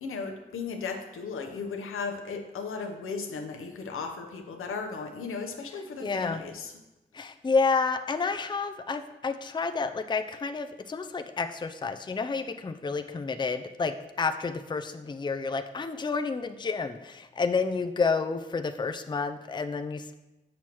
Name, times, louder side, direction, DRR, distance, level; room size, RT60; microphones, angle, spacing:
voice 1, 0.0-6.7, left 5 dB, 80° left, 3 dB, 0.8 m, -36 dB
voice 2, 6.0-6.4 7.1-20.1, left 4 dB, 20° left, 8 dB, 0.4 m, -30 dB
6.9 x 6.2 x 3.0 m, 1.0 s
supercardioid pair, 40°, 21 cm